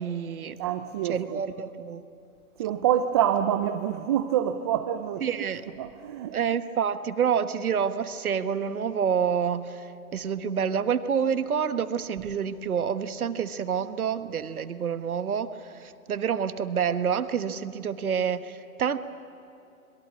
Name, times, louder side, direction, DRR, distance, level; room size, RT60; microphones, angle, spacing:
voice 1, 0.0-0.6 1.0-2.0 5.2-5.6 6.3-19.0, right 7 dB, 75° right, 1.5 m, -28 dB
voice 2, 0.6-1.4 2.6-5.3 5.8-6.4, right 10 dB, 20° right, 0.5 m, -26 dB
25.0 x 22.5 x 8.8 m
hypercardioid pair, 135°, 43 cm